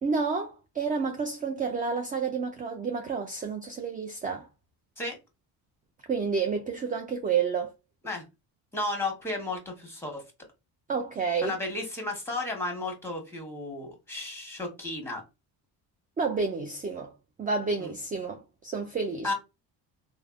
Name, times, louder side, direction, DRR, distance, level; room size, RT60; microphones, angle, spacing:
voice 1, 0.0-4.5 6.1-7.7 10.9-11.5 16.2-17.1 17.4-19.3, right 5 dB, 20° right, 0.3 m, -30 dB
voice 2, 8.7-10.2 11.4-15.2 17.8-17.9 19.2-19.3, left 2 dB, 5° left, 1.1 m, -33 dB
3.2 x 2.0 x 2.4 m
supercardioid pair, 75°, 46 cm